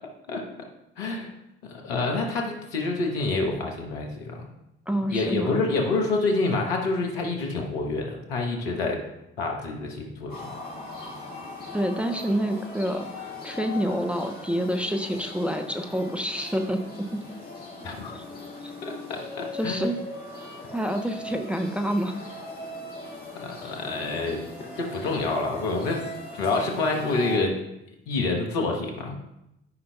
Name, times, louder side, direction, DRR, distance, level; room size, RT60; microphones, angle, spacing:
voice 1, 1.0-1.3 1.6-4.5 5.1-9.0 9.4-10.3 17.8-18.1 18.8-19.9 23.4-24.4 24.8-26.0 26.3-27.6 28.1-29.2, left 3 dB, 75° left, 1 dB, 1.2 m, -27 dB
voice 2, 4.9-5.6 11.7-13.1 13.4-16.8 17.1-17.2 18.1-18.2 18.6-18.7 19.5-20.0 20.7-22.2 23.6-23.7, equal, 5° right, 4 dB, 0.7 m, -27 dB
sound 1, 10.3-27.4, left 2 dB, 30° left, 2.4 m, -40 dB
12.0 x 5.4 x 2.2 m, 0.86 s
figure-of-eight pair, 50°, 31 cm